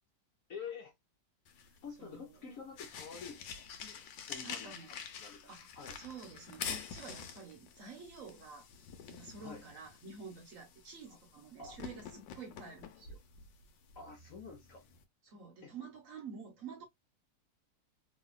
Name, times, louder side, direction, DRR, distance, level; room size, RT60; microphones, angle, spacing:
voice 1, 0.5-0.9 1.8-4.7 5.2-6.0 9.4-9.6 11.1-11.2 11.6-11.8 13.9-14.8 15.6-15.8, left 5 dB, 60° left, 1.0 m, -48 dB
sound 1, 1.5-15.0, left 7 dB, 85° left, 1.4 m, -48 dB
voice 2, 4.4-5.0 5.5-5.7 5.9-8.7 9.1-13.2 15.2-16.8, right 5 dB, 55° right, 1.0 m, -49 dB
3.0 x 2.7 x 2.2 m
omnidirectional pair, 1.9 m